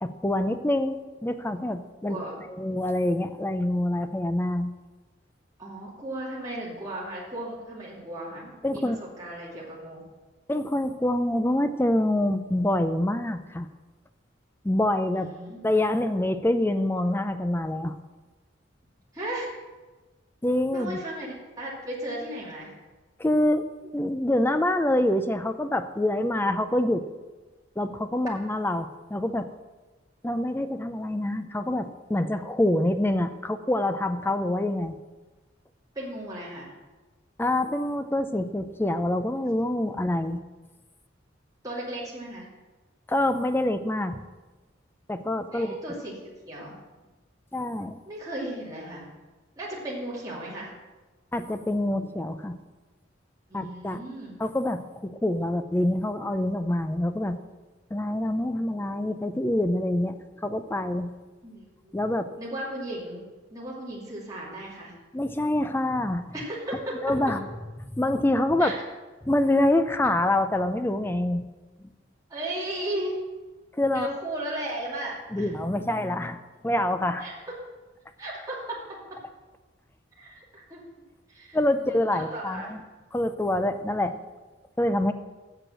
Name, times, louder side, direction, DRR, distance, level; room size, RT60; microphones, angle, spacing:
voice 1, 0.0-2.2 2.5-4.7 8.6-9.0 10.5-13.7 14.6-15.3 15.6-18.0 20.4-21.0 23.2-23.7 23.9-27.0 27.8-29.5 30.2-34.9 37.4-40.4 43.1-44.2 45.1-45.8 47.5-48.0 51.3-52.6 53.5-54.0 54.4-57.4 57.9-61.1 61.9-62.3 65.1-66.2 67.0-67.4 67.9-68.7 69.2-71.5 73.8-74.1 75.3-77.3 81.5-82.8 83.1-84.2 84.8-85.1, left 1 dB, 10° left, 9 dB, 0.5 m, -26 dB
voice 2, 5.6-10.0 15.1-15.6 19.1-19.5 20.7-22.7 35.9-36.7 41.6-42.5 45.5-46.8 48.1-49.1 49.6-50.7 53.5-54.3 61.4-61.9 62.4-63.2 63.5-64.9 66.3-67.1 68.6-68.8 72.3-73.2 73.9-75.5 77.2-77.3 78.2-79.0 80.1-80.9 81.3-82.7 83.8-84.2, right 1 dB, 20° right, -6 dB, 2.4 m, -36 dB
7.8 x 6.7 x 7.5 m, 1.2 s
head